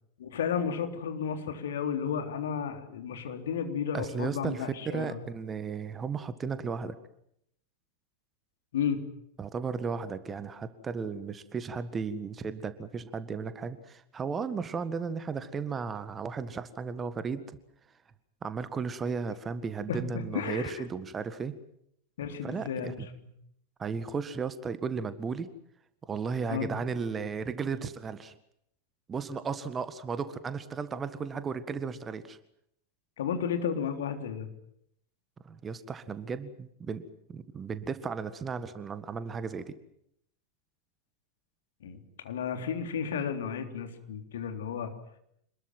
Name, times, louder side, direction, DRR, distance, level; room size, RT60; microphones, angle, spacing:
voice 1, 0.2-5.2 8.7-9.0 19.9-20.7 22.2-23.0 26.5-26.7 33.2-34.5 41.8-42.0 42.2-44.9, left 7 dB, 60° left, 6 dB, 3.7 m, -33 dB
voice 2, 3.9-6.9 9.4-17.6 18.4-21.5 22.4-23.1 23.8-25.5 26.0-28.3 29.1-32.4 35.4-37.0 37.3-39.7, right 5 dB, 20° right, 13 dB, 1.8 m, -35 dB
27.0 x 21.0 x 7.8 m, 0.74 s
figure-of-eight pair, 90°, 0 cm